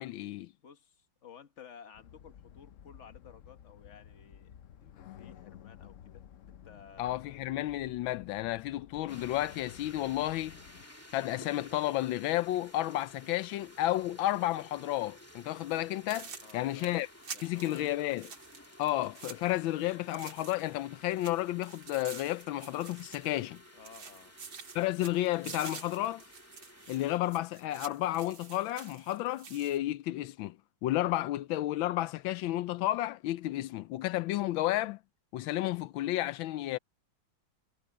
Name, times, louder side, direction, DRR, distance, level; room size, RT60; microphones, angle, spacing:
voice 1, 0.0-0.5 7.0-10.6 11.1-17.1 17.4-18.3 18.8-23.6 24.7-26.2 26.9-30.6 30.8-35.0 35.3-36.8, left 15 dB, 85° left, 1.4 m, -32 dB
voice 2, 0.6-4.5 4.8-7.4 16.3-17.0 17.3-17.9 23.7-24.3, left 7 dB, 40° left, 1.6 m, -55 dB
sound 1, 1.9-10.9, left 10 dB, 65° left, 0.7 m, -53 dB
sound 2, 9.1-27.2, left 1 dB, 5° left, 2.2 m, -55 dB
sound 3, 15.6-15.8 16.1-20.8 21.1-23.6 23.8-29.8, right 5 dB, 85° right, 3.2 m, -48 dB
omnidirectional pair, 2.1 m